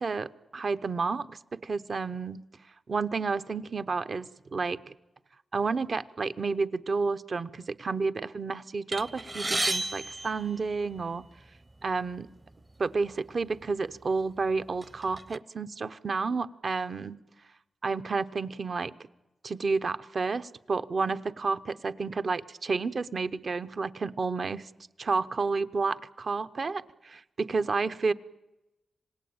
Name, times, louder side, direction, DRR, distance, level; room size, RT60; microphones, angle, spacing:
voice 1, 0.0-2.4 2.9-4.9 5.5-11.2 11.8-12.3 12.8-17.2 17.8-18.9 19.4-24.7 25.0-28.1, right 4 dB, 55° right, 12 dB, 0.9 m, -31 dB
sound 1, 8.9-11.2 12.1-12.2 12.5-12.7 13.6-13.7 14.2-15.4, right 2 dB, 25° right, 0.8 m, -33 dB
26.5 x 18.5 x 8.8 m, 0.98 s
cardioid pair, 70°, 0 cm